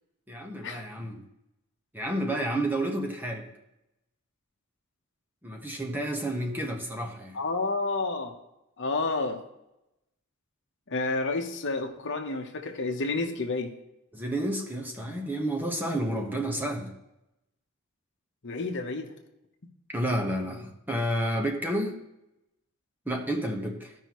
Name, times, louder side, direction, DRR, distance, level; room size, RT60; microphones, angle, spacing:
voice 1, 0.3-1.2 1.9-3.5 5.4-7.4 14.1-16.9 19.9-22.0 23.0-23.9, right 1 dB, 10° right, 1 dB, 1.2 m, -30 dB
voice 2, 7.3-8.3 8.8-9.4 10.9-13.7 18.4-19.1, left 3 dB, 60° left, 4 dB, 1.0 m, -30 dB
14.5 x 5.5 x 3.1 m, 0.88 s
head